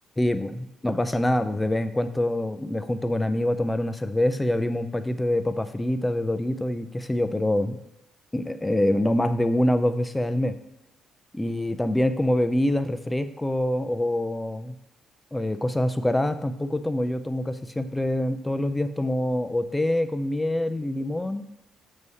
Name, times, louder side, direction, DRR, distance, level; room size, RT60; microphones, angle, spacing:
voice 1, 0.2-7.8 8.3-10.5 11.3-14.8 15.3-21.4, left 1 dB, 10° left, 9 dB, 0.4 m, -25 dB
6.8 x 3.2 x 5.4 m, 0.85 s
cardioid pair, 90°, 0 cm